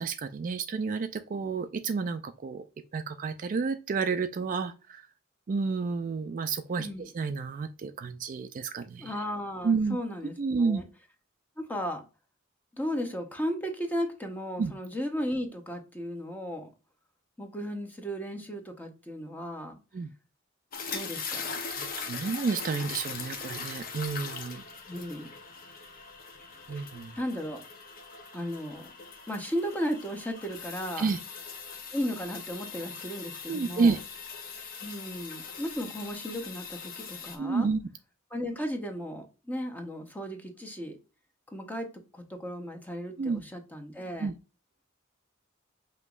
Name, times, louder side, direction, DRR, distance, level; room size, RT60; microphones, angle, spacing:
voice 1, 0.0-2.6 2.9-5.1 5.5-6.9 7.1-9.1 9.6-10.0 10.4-10.8 14.6-14.7 19.9-20.1 21.7-24.6 26.7-27.1 31.0-31.2 33.5-34.0 37.4-37.8 43.2-43.4 44.2-44.3, right 4 dB, 40° right, 0.3 m, -30 dB
voice 2, 6.8-7.1 9.0-10.9 11.6-12.0 12.7-16.7 17.4-19.8 20.9-21.5 24.9-25.3 26.7-26.9 27.1-27.6 28.3-28.9 29.3-31.1 31.9-34.0 34.8-37.7 38.3-41.0 41.5-44.3, equal, 10° left, 0.8 m, -35 dB
sound 1, 20.7-37.4, left 5 dB, 45° left, 0.8 m, -41 dB
5.4 x 3.0 x 2.4 m
head